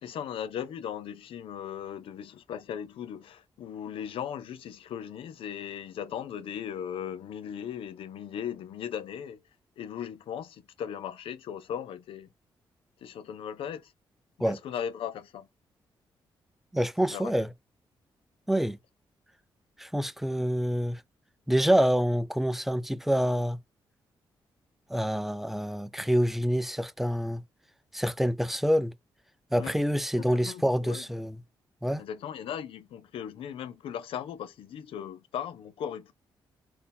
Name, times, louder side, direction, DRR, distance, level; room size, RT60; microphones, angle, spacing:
voice 1, 0.0-9.4 9.8-12.3 13.0-13.9 14.4-15.5 17.1-17.3 29.6-29.7 30.3-31.1 32.0-36.1, left 9 dB, 80° left, 0.6 m, -38 dB
voice 2, 16.7-17.5 18.5-18.8 19.8-21.0 21.5-23.6 24.9-27.4 27.9-28.9 29.5-31.4 31.8-32.0, equal, 5° right, 0.4 m, -26 dB
4.1 x 2.8 x 3.5 m
cardioid pair, 70°, 9 cm